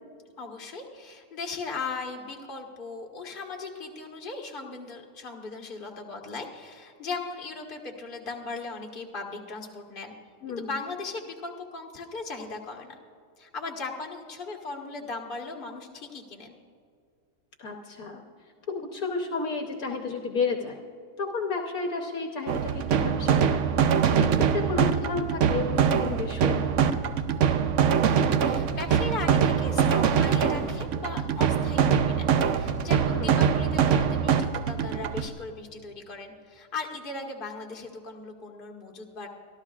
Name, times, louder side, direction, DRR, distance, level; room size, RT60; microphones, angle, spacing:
voice 1, 0.4-10.1 10.6-13.0 13.4-16.6 28.1-39.3, left 3 dB, 35° left, 1 dB, 1.5 m, -38 dB
voice 2, 10.4-10.7 17.6-18.2 18.7-20.8 21.2-26.9 33.1-33.4, left 4 dB, 65° left, 2 dB, 1.4 m, -32 dB
sound 1, 22.5-35.3, right 7 dB, 60° right, 0.8 m, -23 dB
24.5 x 13.5 x 2.4 m, 2.3 s
omnidirectional pair, 1.7 m